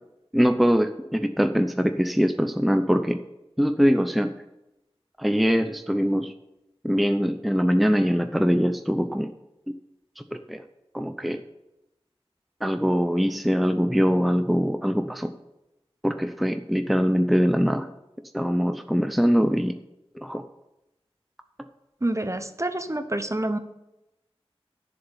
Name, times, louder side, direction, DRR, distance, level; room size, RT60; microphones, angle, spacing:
voice 1, 0.3-3.2 3.6-4.3 5.2-6.3 6.8-9.3 10.2-10.6 10.9-11.4 12.6-15.3 16.0-17.9 18.3-19.7 20.1-20.4, equal, ahead, 8 dB, 0.6 m, -22 dB
voice 2, 22.0-23.6, right 1 dB, 30° right, 10 dB, 0.9 m, -27 dB
11.0 x 6.9 x 7.2 m, 0.91 s
wide cardioid pair, 45°, 11 cm